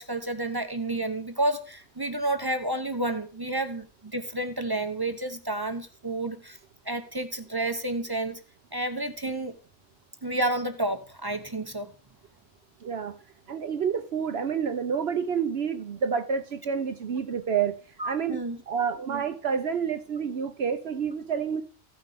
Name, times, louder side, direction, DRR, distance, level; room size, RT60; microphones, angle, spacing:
voice 1, 0.0-6.6 6.9-8.4 8.7-9.5 10.2-11.9 18.0-18.6, right 2 dB, 25° right, 0.7 m, -30 dB
voice 2, 12.8-13.1 13.5-17.7 18.0-18.4 18.7-21.6, right 7 dB, 60° right, 0.9 m, -28 dB
15.5 x 5.9 x 3.4 m
omnidirectional pair, 1.3 m